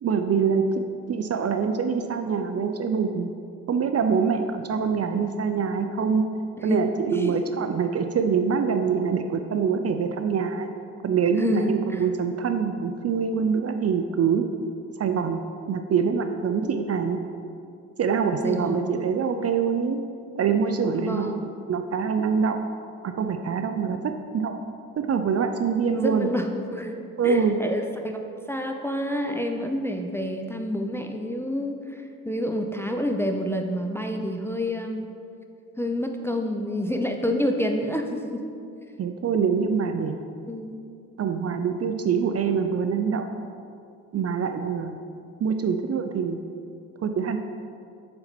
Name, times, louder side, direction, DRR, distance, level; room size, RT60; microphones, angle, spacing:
voice 1, 0.0-3.3 3.7-6.2 6.6-10.7 11.0-14.4 15.0-15.4 15.7-17.2 18.0-20.0 20.4-21.3 21.7-22.6 23.0-24.5 25.0-26.3 27.2-27.6 39.0-40.2 41.2-43.2 44.1-45.0 45.4-46.4 47.0-47.4, right 6 dB, 40° right, 7 dB, 0.5 m, -24 dB
voice 2, 11.4-12.0 16.6-16.7 18.4-19.1 20.9-21.5 26.0-27.0 27.2-28.2 28.5-35.1 35.8-38.5 40.5-40.7, left 1 dB, 5° left, 3 dB, 0.5 m, -28 dB
6.6 x 4.4 x 4.3 m, 2.4 s
hypercardioid pair, 50°, 39 cm